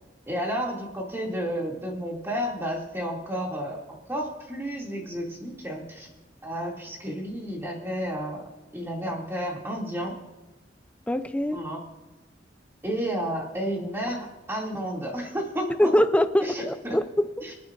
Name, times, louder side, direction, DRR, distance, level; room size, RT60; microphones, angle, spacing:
voice 1, 0.3-6.1 6.4-10.2 11.5-11.8 12.8-15.9 16.4-17.0 17.4-17.5, equal, 15° right, -2 dB, 2.6 m, -31 dB
voice 2, 11.1-11.6 15.8-17.3, equal, 10° left, 10 dB, 0.5 m, -23 dB
26.0 x 9.4 x 2.6 m, 1.1 s
head